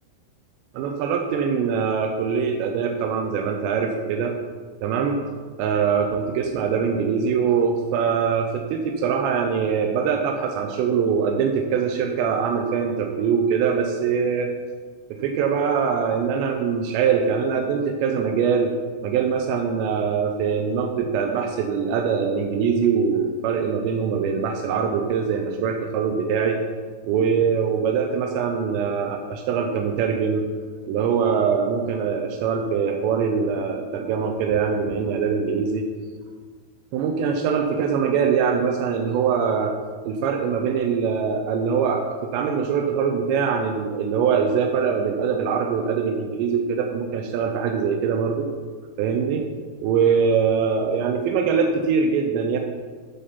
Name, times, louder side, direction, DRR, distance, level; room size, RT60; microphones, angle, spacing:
voice 1, 0.7-4.3 4.8-5.2 5.6-14.5 15.1-18.7 19.0-26.6 27.0-30.5 30.8-35.8 36.9-39.7 40.0-48.5 49.0-49.4 49.8-52.6, right 6 dB, 85° right, 3 dB, 2.5 m, -23 dB
8.4 x 7.4 x 5.7 m, 1.5 s
omnidirectional pair, 5.9 m